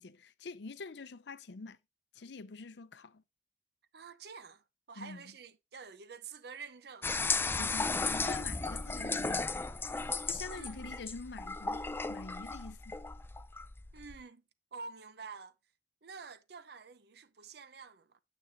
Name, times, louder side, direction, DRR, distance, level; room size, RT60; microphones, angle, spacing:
voice 1, 0.0-1.8 2.1-3.2 5.0-5.2 7.6-9.8 10.3-11.8 12.1-13.0, left 3 dB, 70° left, 0.6 m, -46 dB
voice 2, 3.9-7.2 10.5-10.9 13.9-14.4 14.7-15.6 16.0-18.2, right 5 dB, 60° right, 0.7 m, -49 dB
sound 1, 7.0-14.2, left 3 dB, 15° left, 0.4 m, -35 dB
9.4 x 7.0 x 2.7 m
head